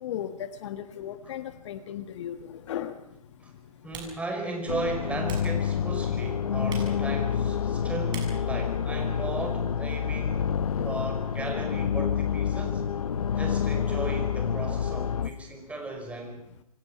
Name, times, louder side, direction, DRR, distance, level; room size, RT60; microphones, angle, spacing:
voice 1, 0.0-2.9, left 10 dB, 50° left, 11 dB, 1.4 m, -36 dB
Typing, 2.1-9.6, right 6 dB, 25° right, 6.8 m, -49 dB
voice 2, 3.8-10.5 10.8-12.9 13.3-16.4, right 2 dB, 5° right, 3 dB, 5.3 m, -36 dB
sound 1, 4.7-15.3, left 7 dB, 75° left, 1.0 m, -28 dB
27.0 x 23.5 x 5.6 m, 0.80 s
figure-of-eight pair, 120°, 19 cm